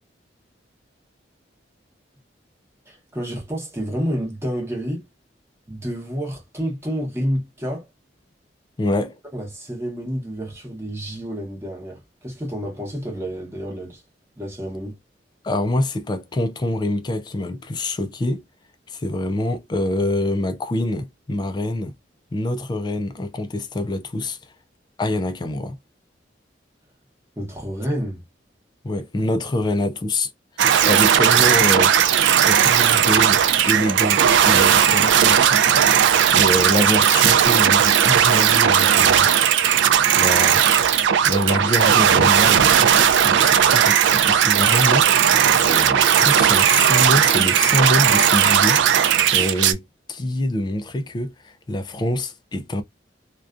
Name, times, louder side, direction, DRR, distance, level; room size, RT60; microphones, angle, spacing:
voice 1, 2.9-5.1 5.7-7.9 9.3-14.0 14.4-15.0 27.4-28.2, equal, 15° right, 0.9 m, -29 dB
voice 2, 8.8-9.1 15.4-18.4 18.9-22.0 22.3-24.4 25.0-25.8 28.8-30.3 30.9-31.9 32.4-35.7 36.3-39.3 40.1-40.6 41.3-42.7 43.1-45.2 45.6-52.8, left 1 dB, 25° left, 0.3 m, -25 dB
sound 1, 30.6-49.7, right 9 dB, 80° right, 0.3 m, -16 dB
2.4 x 2.2 x 2.4 m
head